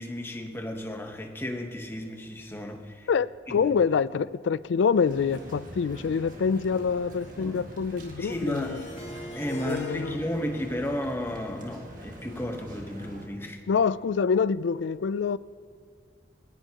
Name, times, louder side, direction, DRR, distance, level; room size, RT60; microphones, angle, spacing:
voice 1, 0.0-3.1 3.5-3.7 7.4-7.6 8.2-8.8 9.3-13.6, equal, 15° left, 1.1 m, -33 dB
voice 2, 3.1-8.8 9.5-10.2 13.7-15.4, left 6 dB, 90° left, 0.4 m, -26 dB
sound 1, 5.0-13.3, equal, 45° right, 1.9 m, -44 dB
Harp, 8.3-13.3, left 2 dB, 40° left, 2.2 m, -43 dB
19.5 x 19.0 x 2.9 m
head